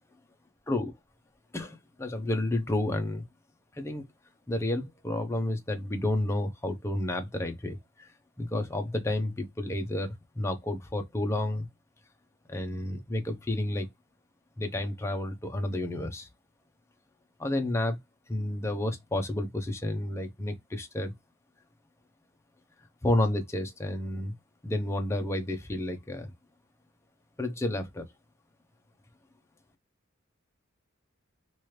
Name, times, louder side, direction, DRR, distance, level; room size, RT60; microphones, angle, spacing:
voice 1, 1.5-3.2 3.8-4.0 4.5-8.1 8.4-11.7 12.5-13.9 14.6-16.3 17.4-18.0 18.3-21.1 23.0-24.3 24.6-26.3 27.4-28.1, left 1 dB, 15° left, 0.6 m, -31 dB
3.0 x 2.5 x 3.1 m
head